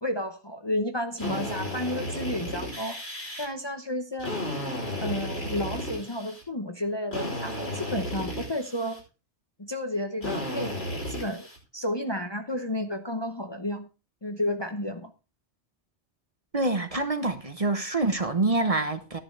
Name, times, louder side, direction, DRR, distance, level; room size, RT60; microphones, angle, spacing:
voice 1, 0.0-3.0 3.4-4.4 5.0-9.0 9.6-11.5 11.7-13.9 14.2-15.1, left 1 dB, 25° left, 5 dB, 0.8 m, -32 dB
Drill, 1.2-3.5 4.2-6.4 7.1-9.0 10.2-11.6, left 1 dB, 65° left, 5.3 m, -34 dB
voice 2, 16.5-19.2, right 2 dB, 35° right, 8 dB, 1.1 m, -26 dB
13.0 x 10.5 x 3.3 m, 0.31 s
omnidirectional pair, 1.2 m